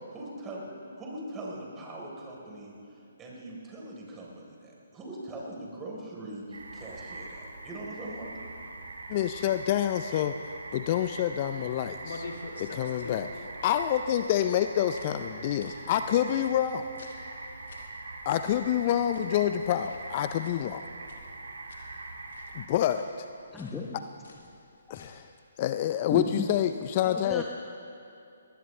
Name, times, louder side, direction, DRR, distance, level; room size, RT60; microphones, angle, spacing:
voice 1, 0.1-8.3, right 1 dB, 15° right, -3 dB, 3.8 m, -41 dB
sound 1, 6.5-22.7, right 2 dB, 80° right, 2.0 m, -42 dB
voice 2, 9.1-10.4 10.7-12.3 12.6-16.9 18.3-20.8 22.5-23.1 24.9-25.3 25.6-27.4, left 11 dB, 35° left, 10 dB, 0.4 m, -27 dB
sound 2, 11.9-25.3, left 3 dB, 65° left, 2.2 m, -50 dB
voice 3, 23.5-24.0 26.1-26.5 27.0-27.4, left 3 dB, 10° left, -1 dB, 0.9 m, -33 dB
20.5 x 19.0 x 3.3 m, 2.5 s
figure-of-eight pair, 140°, 0 cm